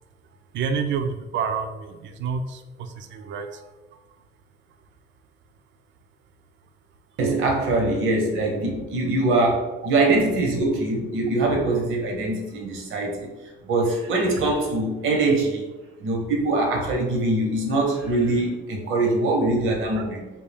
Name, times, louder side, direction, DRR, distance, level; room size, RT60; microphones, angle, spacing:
voice 1, 0.5-3.7, right 6 dB, 70° right, 7 dB, 0.4 m, -29 dB
voice 2, 7.2-13.3 13.6-15.6 16.0-20.3, right 2 dB, 85° right, 0 dB, 0.9 m, -23 dB
3.5 x 2.4 x 3.3 m, 1.1 s
cardioid pair, 90°, 20 cm